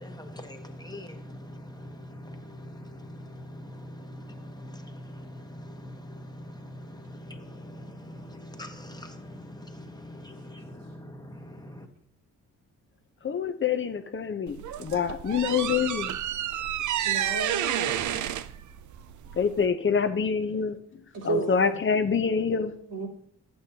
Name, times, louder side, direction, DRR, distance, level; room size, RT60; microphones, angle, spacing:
voice 1, 0.0-11.9, equal, 10° left, 1.2 m, -43 dB
voice 2, 13.2-16.1 19.4-20.8 21.2-22.7, left 6 dB, 35° left, 0.8 m, -26 dB
sound 1, 14.5-19.7, right 11 dB, 65° right, 0.5 m, -30 dB
voice 3, 17.0-18.2 21.1-21.8 22.9-23.1, right 3 dB, 85° right, 3.5 m, -32 dB
11.0 x 8.7 x 2.8 m
cardioid pair, 65°, 33 cm